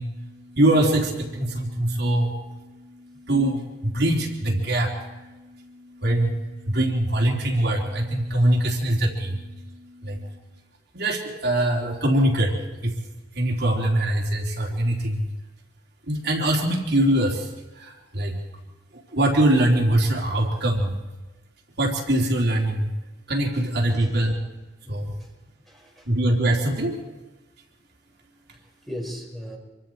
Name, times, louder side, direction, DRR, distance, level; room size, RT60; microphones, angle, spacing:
voice 1, 0.0-10.3 10.9-12.5 12.8-12.9 13.3-15.3 16.1-17.5 17.8-18.4 18.9-20.9 21.8-22.9 23.3-24.3 24.9-25.1 26.1-27.0, right 1 dB, 60° right, 0 dB, 3.3 m, -23 dB
voice 2, 23.9-24.3 24.8-25.3 25.7-26.1 28.5-28.6 28.9-29.6, equal, ahead, -2 dB, 4.7 m, -38 dB
26.5 x 23.5 x 4.6 m, 1.1 s
head